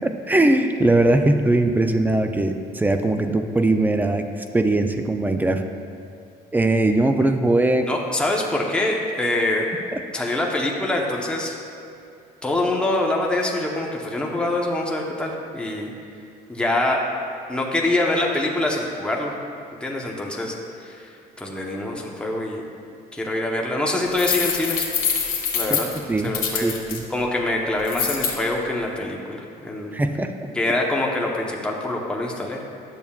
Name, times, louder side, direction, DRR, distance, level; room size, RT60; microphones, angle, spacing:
voice 1, 0.0-5.6 6.5-7.9 9.9-10.0 25.7-25.8 26.1-27.0 29.9-30.3, right 2 dB, 10° right, 6 dB, 0.4 m, -20 dB
voice 2, 7.8-9.7 10.1-11.6 12.4-15.9 16.5-17.0 17.5-19.3 19.8-22.6 23.1-24.8 25.5-25.9 26.2-26.7 27.1-30.0 30.5-32.6, left 2 dB, 5° left, -2 dB, 0.9 m, -25 dB
sound 1, 24.1-27.0 27.9-28.3, left 6 dB, 55° left, 1.4 m, -25 dB
10.5 x 7.0 x 2.4 m, 2.5 s
cardioid pair, 110°, 17 cm